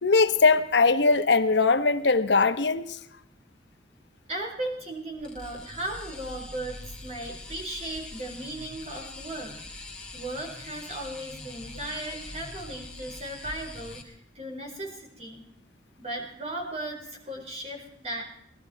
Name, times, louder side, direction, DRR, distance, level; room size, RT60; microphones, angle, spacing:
voice 1, 0.0-3.0, left 4 dB, 75° left, 1.0 m, -21 dB
voice 2, 4.3-9.9 10.1-15.4 16.0-18.2, right 1 dB, 35° right, 4.6 m, -36 dB
sound 1, 5.2-14.0, left 2 dB, 5° left, 2.2 m, -43 dB
20.0 x 13.0 x 4.6 m
head